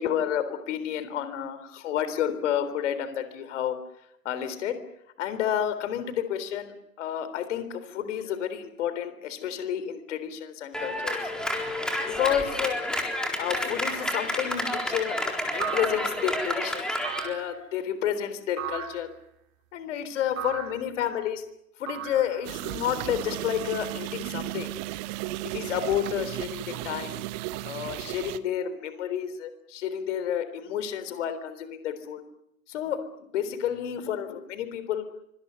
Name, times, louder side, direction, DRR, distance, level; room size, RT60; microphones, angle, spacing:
voice 1, 0.0-3.8 4.3-4.8 5.2-11.2 12.1-12.8 13.4-19.1 19.7-21.4 21.8-24.7 25.4-27.2 27.6-32.2 32.7-35.0, left 9 dB, 50° left, 12 dB, 3.8 m, -30 dB
Clapping, 10.7-17.3, left 1 dB, ahead, 4.0 m, -30 dB
sound 1, 13.9-14.3 15.6-16.4 17.0-17.6 18.6-19.1 20.4-20.9 21.9-22.6, right 9 dB, 55° right, 3.9 m, -36 dB
sound 2, 22.4-28.4, right 17 dB, 25° right, 1.0 m, -35 dB
25.5 x 25.0 x 7.0 m, 0.77 s
figure-of-eight pair, 115°, 47 cm